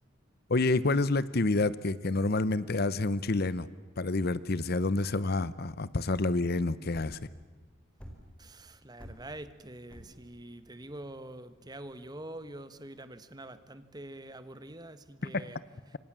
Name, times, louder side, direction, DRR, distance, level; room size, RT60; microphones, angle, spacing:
voice 1, 0.5-3.7 4.0-7.2 15.2-15.4, left 2 dB, 50° left, 17 dB, 0.8 m, -28 dB
sound 1, 6.9-12.6, equal, 5° left, 4.6 m, -50 dB
voice 2, 8.4-15.6 15.9-16.0, right 1 dB, 20° right, 12 dB, 1.3 m, -45 dB
29.0 x 25.5 x 7.5 m, 1.4 s
head